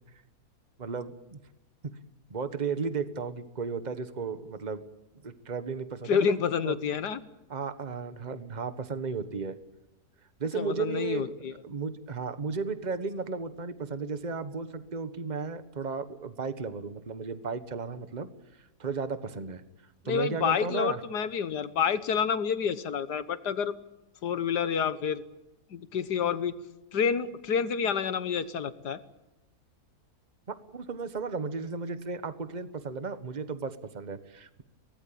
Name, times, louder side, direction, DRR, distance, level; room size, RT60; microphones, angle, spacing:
voice 1, 0.8-1.4 1.8-1.9 2.3-4.8 5.2-6.8 7.5-9.6 10.4-11.3 11.6-18.3 18.8-19.6 20.0-21.0 30.5-34.6, right 5 dB, 30° right, 11 dB, 1.4 m, -34 dB
voice 2, 6.1-7.2 10.5-11.5 20.1-23.7 24.2-25.2 25.7-26.5 26.9-29.0, left 7 dB, 85° left, 13 dB, 1.9 m, -28 dB
23.5 x 19.0 x 8.7 m, 0.96 s
omnidirectional pair, 1.7 m